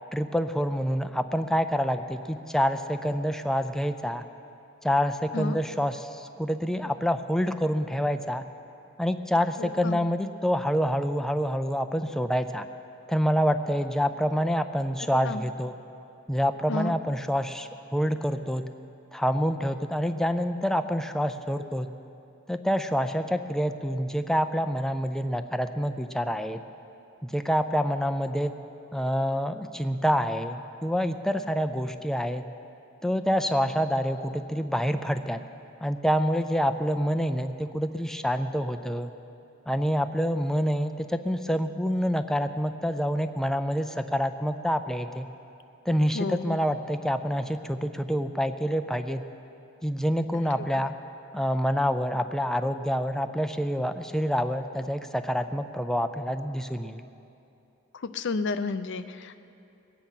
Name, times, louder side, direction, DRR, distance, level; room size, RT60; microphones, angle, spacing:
voice 1, 0.1-4.2 4.8-8.4 9.0-12.7 13.1-15.8 16.3-18.6 19.1-21.9 22.5-26.6 27.2-28.5 28.9-32.4 33.0-35.4 35.8-39.1 39.7-45.3 45.9-49.2 49.8-51.0 51.3-57.0, equal, ahead, 8 dB, 0.4 m, -27 dB
voice 2, 9.6-10.0 15.1-15.4 16.7-16.9 46.1-46.6 50.7-50.8 57.9-59.4, left 3 dB, 60° left, 11 dB, 0.6 m, -31 dB
21.0 x 9.1 x 5.7 m, 2.7 s
head